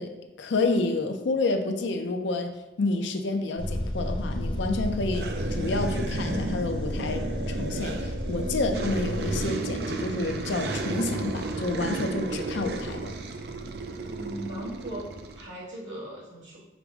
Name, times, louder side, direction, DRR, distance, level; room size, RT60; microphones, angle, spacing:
voice 1, 0.0-2.5 2.8-13.1, left 3 dB, 85° left, 6 dB, 0.5 m, -29 dB
sound 1, 3.6-9.5, left 1 dB, 30° left, 0.5 m, -32 dB
sound 2, 5.1-15.4, right 3 dB, 60° right, 0.3 m, -33 dB
voice 2, 14.0-15.1 15.3-16.6, right 1 dB, 85° right, -6 dB, 1.5 m, -38 dB
5.1 x 2.0 x 4.6 m, 1.0 s
head